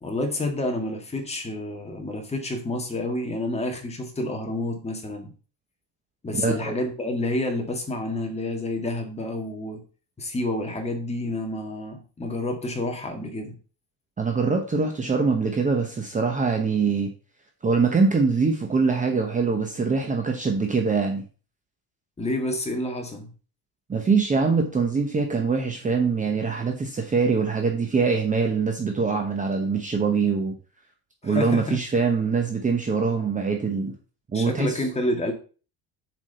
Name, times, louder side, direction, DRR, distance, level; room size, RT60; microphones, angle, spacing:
voice 1, 0.0-5.3 6.2-9.8 10.2-13.6 22.2-23.3 31.2-31.8 34.3-35.3, left 1 dB, 15° left, 3 dB, 1.8 m, -29 dB
voice 2, 6.4-6.8 14.2-17.1 17.6-21.2 23.9-30.5 31.2-33.9 34.3-34.8, right 4 dB, 15° right, 3 dB, 1.0 m, -23 dB
7.6 x 4.9 x 6.7 m, 0.37 s
cardioid pair, 160°, 44 cm